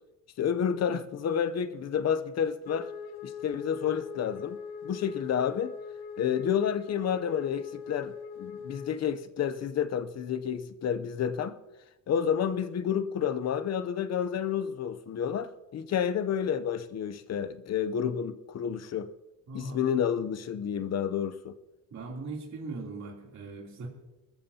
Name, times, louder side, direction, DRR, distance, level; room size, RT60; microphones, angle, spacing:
voice 1, 0.4-2.9 3.2-5.7 6.2-11.5 12.1-19.1 19.5-21.5, left 8 dB, 45° left, 0.7 m, -30 dB
Wind instrument woodwind instrument, 2.6-9.1, left 6 dB, 80° left, 0.9 m, -41 dB
voice 2, 19.5-19.8 21.9-23.9, right 3 dB, 50° right, 3.2 m, -39 dB
21.5 x 14.0 x 2.8 m
cardioid pair, 170°, 37 cm